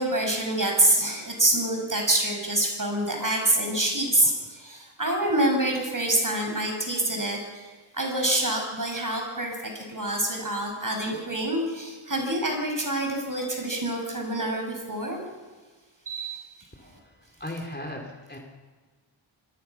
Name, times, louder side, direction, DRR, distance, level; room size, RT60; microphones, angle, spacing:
voice 1, 0.0-7.7 7.9-15.2 16.1-16.4, right 1 dB, 40° right, 2 dB, 6.2 m, -26 dB
voice 2, 16.7-18.4, left 1 dB, 20° left, 2 dB, 3.6 m, -38 dB
25.0 x 18.5 x 6.1 m, 1.4 s
wide cardioid pair, 60°, 49 cm